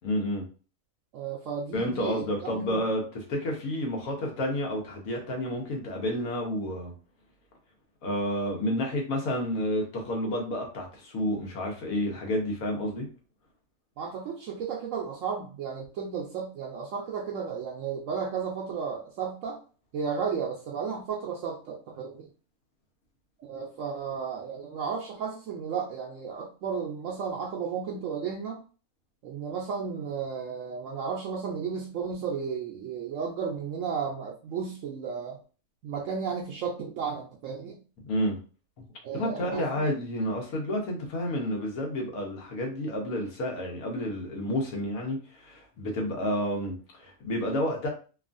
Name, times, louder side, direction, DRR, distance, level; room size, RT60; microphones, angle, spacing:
voice 1, 0.0-0.4 1.7-6.9 8.0-13.1 38.1-38.4 38.8-38.9 39.1-47.9, left 1 dB, 90° left, 1 dB, 1.3 m, -30 dB
voice 2, 1.1-2.8 14.0-19.6 19.9-22.3 23.4-28.6 29.2-35.4 35.8-37.8 39.0-39.9, right 6 dB, 75° right, -2 dB, 0.9 m, -34 dB
2.9 x 2.4 x 2.5 m, 0.36 s
omnidirectional pair, 1.4 m